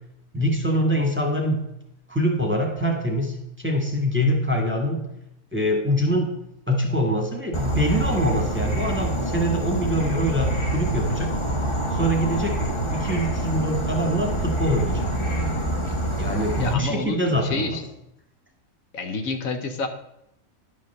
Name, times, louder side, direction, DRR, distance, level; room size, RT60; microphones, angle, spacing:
voice 1, 0.3-1.6 2.1-3.3 3.6-5.0 5.5-6.3 6.7-11.3 11.9-12.5 12.9-15.1 16.2-17.8, equal, 10° right, 1 dB, 1.4 m, -24 dB
Insect / Frog, 7.5-16.7, right 1 dB, 20° left, 1.1 m, -26 dB
voice 2, 16.6-17.9 18.9-19.9, left 3 dB, 75° left, 7 dB, 1.4 m, -29 dB
11.0 x 5.2 x 6.5 m, 0.82 s
omnidirectional pair, 1.4 m